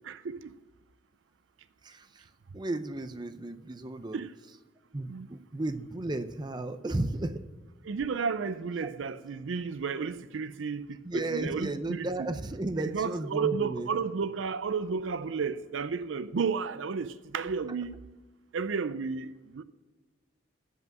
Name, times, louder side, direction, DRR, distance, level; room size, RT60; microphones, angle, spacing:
voice 1, 0.1-0.5 4.1-4.3 5.1-5.3 7.8-12.3 12.8-18.0 18.5-19.6, right 5 dB, 70° right, 0.5 m, -32 dB
voice 2, 1.8-4.2 4.9-7.4 8.8-8.9 11.0-13.9, right 2 dB, 20° right, 0.5 m, -34 dB
8.1 x 7.5 x 7.7 m
head